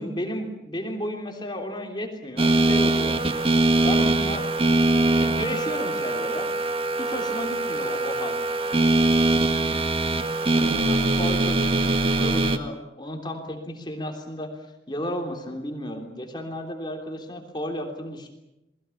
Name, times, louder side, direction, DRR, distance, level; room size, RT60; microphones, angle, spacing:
voice 1, 0.0-3.2 3.7-4.5 5.1-6.5 7.0-8.4 10.6-14.5 14.9-18.3, equal, 25° left, 3 dB, 3.3 m, -33 dB
sound 1, 2.4-12.6, right 2 dB, 30° right, 1.8 m, -22 dB
29.5 x 20.5 x 7.2 m, 0.93 s
head